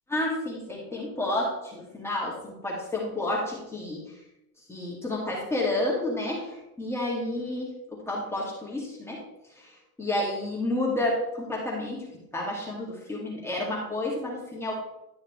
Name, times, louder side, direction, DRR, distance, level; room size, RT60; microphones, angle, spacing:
voice 1, 0.1-4.0 4.7-9.2 9.6-12.1 12.3-14.7, left 1 dB, 5° left, -5 dB, 2.2 m, -30 dB
11.5 x 6.4 x 3.2 m, 0.88 s
supercardioid pair, 125°, 47 cm